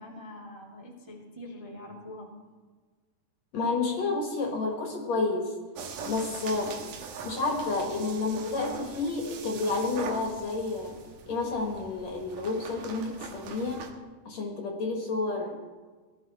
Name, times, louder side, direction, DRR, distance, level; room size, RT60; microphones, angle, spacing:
voice 1, 0.0-2.3, left 1 dB, 10° right, -3 dB, 1.7 m, -44 dB
voice 2, 3.5-5.5 6.1-6.8 7.2-11.0 11.3-13.9 14.2-15.5, left 3 dB, 55° left, 2 dB, 2.7 m, -30 dB
sound 1, 5.7-13.9, right 5 dB, 70° right, 2.8 m, -42 dB
19.5 x 13.0 x 4.4 m, 1.4 s
omnidirectional pair, 4.1 m